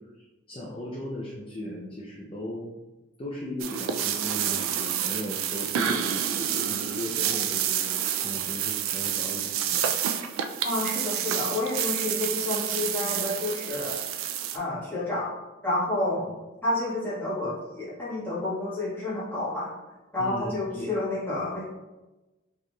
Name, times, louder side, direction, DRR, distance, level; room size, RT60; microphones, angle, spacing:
voice 1, 0.5-2.8 3.2-7.9 8.2-9.9 20.2-20.9, left 1 dB, 25° left, -5 dB, 0.4 m, -37 dB
sound 1, 3.6-14.6, right 9 dB, 85° right, 0.3 m, -29 dB
voice 2, 10.6-14.0 14.5-15.3 15.6-16.3 16.6-19.7 20.1-21.7, left 2 dB, 10° left, -10 dB, 1.3 m, -29 dB
4.7 x 3.0 x 2.2 m, 1.1 s
head